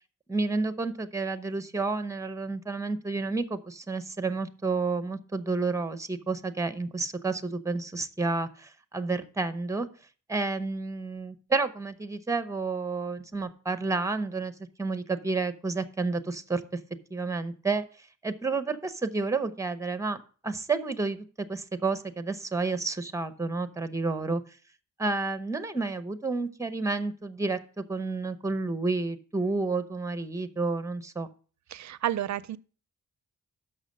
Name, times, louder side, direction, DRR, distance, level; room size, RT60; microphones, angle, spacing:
voice 1, 0.3-9.9 10.3-14.5 14.8-16.6 17.1-17.8 18.2-24.4 25.0-31.3, right 3 dB, 10° right, 0.7 m, -30 dB
voice 2, 31.7-32.6, right 11 dB, 65° right, 0.5 m, -30 dB
6.5 x 5.9 x 6.4 m
wide cardioid pair, 95°, 31 cm